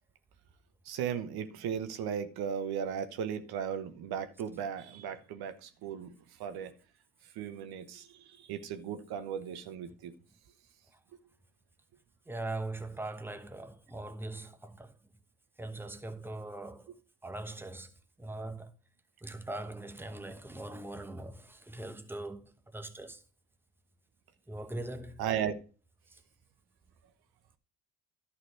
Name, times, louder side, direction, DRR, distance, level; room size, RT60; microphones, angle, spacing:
voice 1, 0.9-6.1 6.4-6.7 7.4-10.1 25.2-25.6, right 8 dB, 70° right, 1.2 m, -36 dB
voice 2, 12.3-15.0 15.6-17.0 17.2-18.7 19.2-23.2 24.5-25.2 26.1-26.2, right 2 dB, 5° right, 1.2 m, -41 dB
11.5 x 4.3 x 6.5 m
hypercardioid pair, 65°, 39 cm